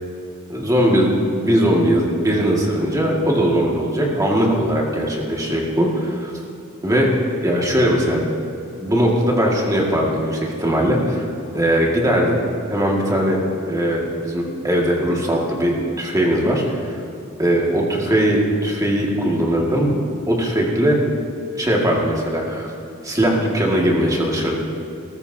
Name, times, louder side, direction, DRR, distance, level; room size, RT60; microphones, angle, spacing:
voice 1, 0.5-6.3 6.8-7.1 7.3-8.2 8.8-11.3 11.5-12.4 12.7-13.4 13.7-16.9 17.4-19.9 20.3-21.0 21.6-22.7 23.0-24.5, equal, 15° right, -2 dB, 1.9 m, -19 dB
20.0 x 13.5 x 2.8 m, 2.7 s
head